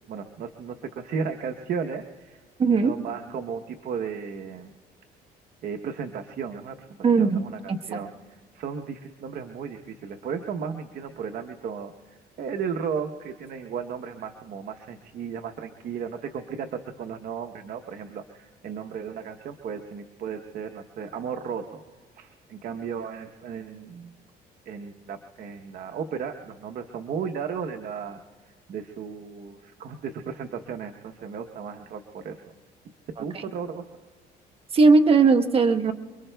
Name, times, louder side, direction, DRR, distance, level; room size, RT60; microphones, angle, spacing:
voice 1, 0.1-2.4 2.7-4.7 5.6-6.8 7.2-8.1 8.5-11.9 12.4-21.8 22.2-24.1 24.7-28.2 28.7-32.4 33.2-33.8, right 6 dB, 60° right, 5 dB, 0.9 m, -34 dB
voice 2, 2.6-2.9 7.0-8.0 33.2-33.4 34.7-35.9, right 4 dB, 35° right, 6 dB, 1.1 m, -19 dB
28.5 x 22.5 x 2.3 m, 1.4 s
cardioid pair, 110°, 17 cm